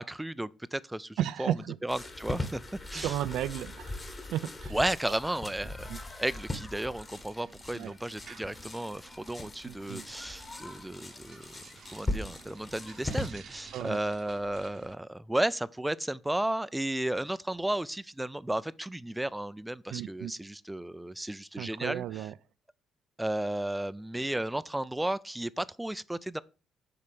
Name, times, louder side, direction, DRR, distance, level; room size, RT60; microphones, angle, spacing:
voice 1, 0.0-1.5 1.8-2.6 2.9-3.1 4.7-11.6 11.9-22.3 23.2-26.4, right 1 dB, 5° right, 0.3 m, -33 dB
voice 2, 1.2-1.8 2.9-4.8 5.9-6.0 7.7-7.9 9.6-10.0 13.7-14.0 19.9-20.3 21.6-22.3, right 12 dB, 85° right, 0.4 m, -34 dB
sound 1, 1.9-13.3, left 2 dB, 20° left, 1.3 m, -40 dB
sound 2, 7.0-15.0, right 6 dB, 50° right, 0.8 m, -53 dB
7.1 x 4.4 x 6.7 m
cardioid pair, 150°, 0 cm